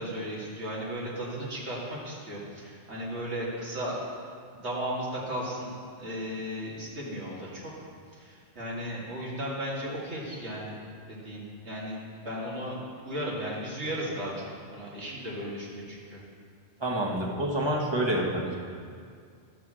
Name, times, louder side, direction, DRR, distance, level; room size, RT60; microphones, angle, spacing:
voice 1, 0.0-4.0 4.5-7.7 8.1-10.8 11.1-16.2, equal, 90° right, -5 dB, 2.5 m, -35 dB
voice 2, 16.8-18.5, right 1 dB, 25° right, -3 dB, 1.4 m, -28 dB
12.0 x 4.8 x 7.5 m, 2.3 s
omnidirectional pair, 1.1 m